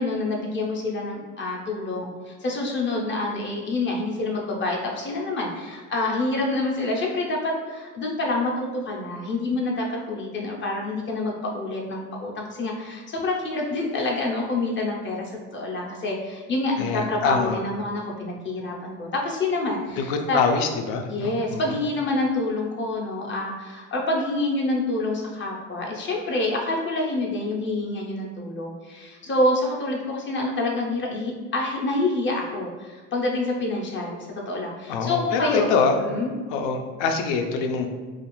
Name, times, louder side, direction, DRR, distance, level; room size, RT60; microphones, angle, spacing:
voice 1, 0.0-20.4 21.1-35.7 36.1-36.3, left 2 dB, 30° left, -1 dB, 0.5 m, -27 dB
voice 2, 16.8-17.6 20.0-21.8 34.9-35.9 36.5-37.9, left 5 dB, 80° left, 5 dB, 0.5 m, -24 dB
2.5 x 2.3 x 2.9 m, 1.4 s
supercardioid pair, 100°, 37 cm